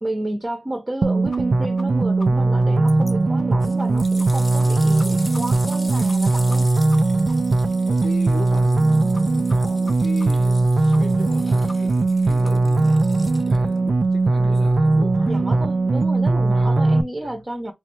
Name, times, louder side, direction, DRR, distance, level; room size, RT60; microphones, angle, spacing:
voice 1, 0.0-6.7 15.2-17.7, right 1 dB, 20° right, 0.7 m, -31 dB
sound 1, 1.0-17.0, right 2 dB, 50° right, 0.3 m, -19 dB
sound 2, 1.3-1.4 1.8-1.9 2.2-2.3 2.6-2.7 3.0-3.1 3.4-3.5 3.8-3.9 4.2-4.3 4.6-4.7 5.0-5.4 5.7-5.8 6.1-6.2 6.5-6.6 6.9-7.0 7.3-7.4 7.7-7.8 8.0-8.1 8.4-8.5 8.8-8.9 9.1-9.2 9.5-9.6 9.9-10.0 10.2-10.3 10.5-10.6 10.9-11.0 11.3-11.4 11.7-11.8 12.1-12.2 12.4-12.5 12.8-12.9, left 2 dB, 45° left, 0.8 m, -41 dB
sound 3, 2.9-3.1 3.6-13.8 14.5-14.6, left 1 dB, 20° left, 0.6 m, -40 dB
voice 2, 7.6-15.6 16.1-16.3 16.5-16.8 17.2-17.4, left 3 dB, 85° left, 1.1 m, -38 dB
3.6 x 3.2 x 3.0 m
wide cardioid pair, 120°, 0 cm